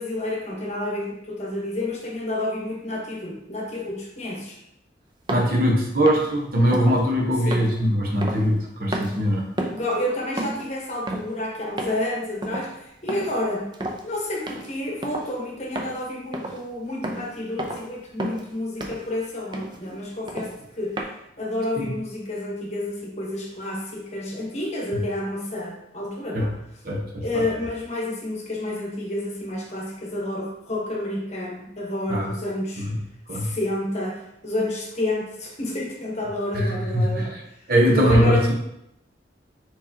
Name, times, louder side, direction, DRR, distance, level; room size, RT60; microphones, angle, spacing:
voice 1, 0.0-4.6 7.4-7.7 9.6-13.7 14.0-20.5 20.8-21.0 21.4-26.6 27.2-32.9 33.3-37.6 37.9-38.5, left 1 dB, 35° left, -2 dB, 1.0 m, -30 dB
sound 1, 5.3-5.5 6.1-6.3 6.7-7.0 7.5-8.7 8.9-9.2 9.6-9.9 10.4-10.7 11.1-11.3 11.8-12.1 12.4-12.7 13.1-13.4 13.7-14.0 14.5-14.7 15.0-15.3 15.8-16.0 16.3-16.6 17.0-17.3 17.6-17.9 18.2-18.5 18.8-19.1 19.5-19.8 20.3-20.6 21.0-21.1, right 1 dB, 25° right, 0.4 m, -31 dB
voice 2, 5.3-9.5 21.8-21.9 26.3-26.5 26.8-27.2 32.1-32.3 32.8-32.9 33.3-33.6 36.5-37.4 37.7-38.4, equal, 50° right, -1 dB, 0.9 m, -21 dB
4.6 x 4.2 x 2.7 m, 0.80 s
head